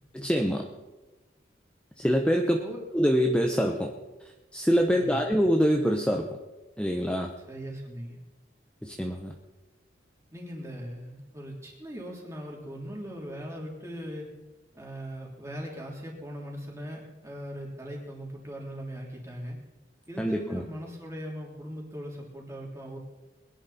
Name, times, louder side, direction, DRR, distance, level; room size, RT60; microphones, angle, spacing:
voice 1, 0.1-0.7 2.0-2.6 2.9-3.9 4.5-6.3 6.8-7.3 8.8-9.3 20.2-20.6, equal, 5° left, 2 dB, 0.9 m, -25 dB
voice 2, 2.4-2.9 4.9-5.2 7.5-8.2 10.3-14.3 14.7-19.6 20.1-23.0, equal, 15° right, -2 dB, 3.4 m, -39 dB
21.0 x 11.0 x 4.3 m, 1.1 s
head